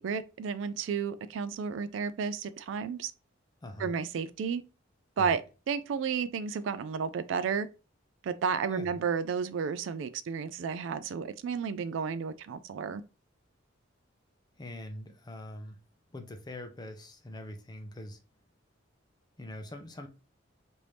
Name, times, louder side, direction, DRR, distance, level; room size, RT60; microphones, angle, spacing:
voice 1, 0.0-3.1 3.8-4.6 5.2-5.4 5.7-7.7 8.2-13.0, right 6 dB, 70° right, 0.3 m, -32 dB
voice 2, 3.6-3.9 5.2-5.4 8.7-9.0 14.6-15.8 16.1-18.2 19.4-20.1, left 1 dB, 20° left, 0.5 m, -43 dB
3.3 x 2.6 x 3.0 m
head